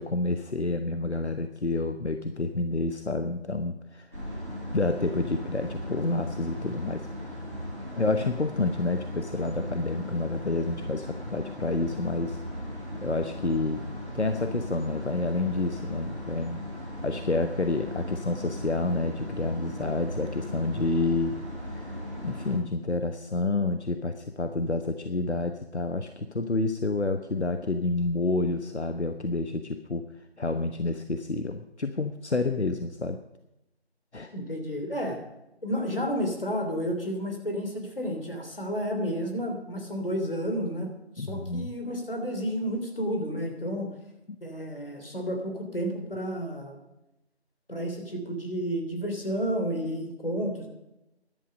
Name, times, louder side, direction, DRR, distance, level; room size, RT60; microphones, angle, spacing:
voice 1, 0.0-4.1 4.7-7.1 7.9-12.4 13.0-13.8 14.1-16.6 17.0-21.4 21.7-21.9 22.2-33.2 34.1-34.3 41.2-41.7, left 2 dB, 80° left, 7 dB, 1.2 m, -29 dB
sound 1, 4.1-22.5, equal, 15° left, 3.8 m, -37 dB
voice 2, 34.3-35.2 35.6-43.9 44.4-46.8 47.7-50.7, equal, 55° left, 3 dB, 3.4 m, -31 dB
15.0 x 11.5 x 5.3 m, 0.90 s
figure-of-eight pair, 180°, 33 cm